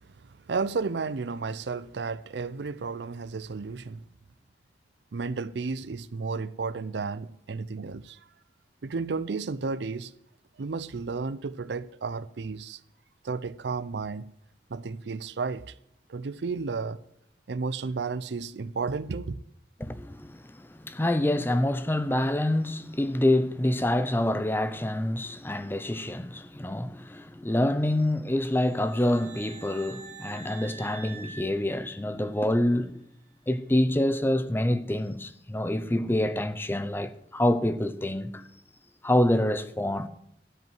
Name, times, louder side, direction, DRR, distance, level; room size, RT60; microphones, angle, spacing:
voice 1, 0.5-4.0 5.1-8.2 8.8-10.1 10.6-12.8 13.2-14.2 14.7-15.7 16.1-17.0 17.5-19.4, right 4 dB, 80° right, 0.5 m, -32 dB
voice 2, 19.8-33.0 33.5-38.4 39.0-40.1, left 1 dB, 10° left, 0.6 m, -26 dB
sound 1, 28.4-32.5, right 5 dB, 45° right, 1.3 m, -47 dB
13.5 x 5.4 x 9.1 m
head